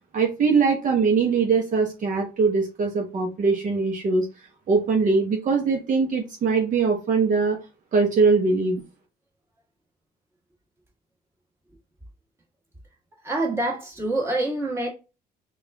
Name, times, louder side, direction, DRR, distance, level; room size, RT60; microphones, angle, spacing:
voice 1, 0.1-4.2 4.7-7.6 7.9-8.8, right 4 dB, 50° right, 0.9 m, -21 dB
voice 2, 13.2-14.9, right 2 dB, 15° right, 1.7 m, -26 dB
4.1 x 2.4 x 3.4 m
cardioid pair, 110°, 17 cm